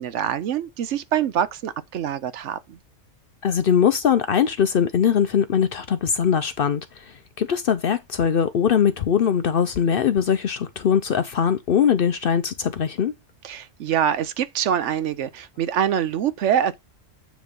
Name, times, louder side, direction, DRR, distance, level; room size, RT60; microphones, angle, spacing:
voice 1, 0.0-2.8 13.4-16.8, right 9 dB, 70° right, 0.9 m, -24 dB
voice 2, 3.4-13.1, left 8 dB, 55° left, 0.7 m, -21 dB
9.2 x 3.1 x 5.2 m
omnidirectional pair, 1.3 m